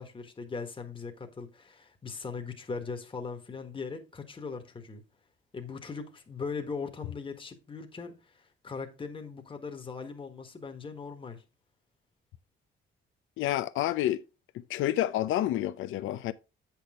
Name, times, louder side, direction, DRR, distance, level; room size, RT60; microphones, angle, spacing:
voice 1, 0.0-5.0 5.5-11.4, left 5 dB, 25° left, 1.5 m, -39 dB
voice 2, 13.4-14.2 14.5-16.3, left 13 dB, 85° left, 0.7 m, -29 dB
8.3 x 6.2 x 3.6 m
cardioid pair, 90°, 20 cm